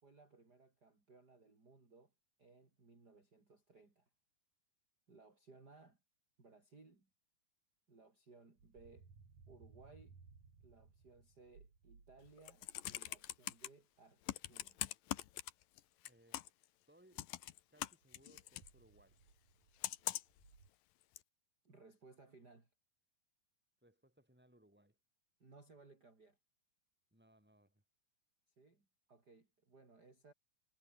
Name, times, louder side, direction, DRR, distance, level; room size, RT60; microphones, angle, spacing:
voice 1, 0.0-2.1 2.4-4.1 5.1-6.0 6.4-7.1 7.9-9.1 9.5-10.2 10.6-14.8 21.6-22.7 25.4-26.4 28.5-30.3, right 3 dB, 25° right, 4.8 m, -63 dB
sound 1, 8.6-13.7 18.0-20.7, right 5 dB, 55° right, 5.8 m, -63 dB
Computer keyboard, 12.3-13.7 14.3-15.8 16.0-16.6 17.2-18.7 19.8-20.4 21.2-21.3, left 14 dB, 80° left, 2.8 m, -42 dB
voice 2, 16.0-16.5 16.9-17.3 17.7-19.2 23.8-25.0 27.1-27.8, right 1 dB, 5° right, 7.6 m, -68 dB
omnidirectional pair, 4.0 m